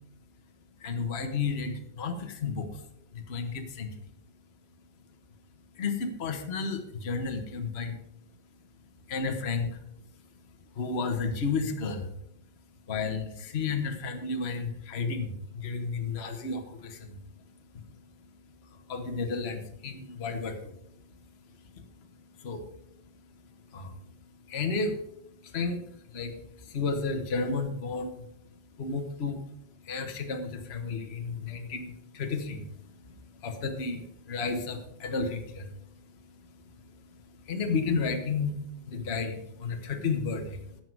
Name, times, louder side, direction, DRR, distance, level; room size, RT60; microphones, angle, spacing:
voice 1, 0.8-2.8 3.1-3.9 5.7-8.0 9.1-9.8 10.8-12.1 12.9-17.2 17.7-17.8 18.7-20.7 21.7-21.8 22.4-22.7 23.7-23.9 24.5-25.0 25.4-28.3 28.8-29.4 29.8-35.7 36.2-40.8, left 4 dB, 40° left, 5 dB, 1.3 m, -32 dB
16.0 x 6.1 x 4.7 m, 0.77 s
omnidirectional pair, 2.0 m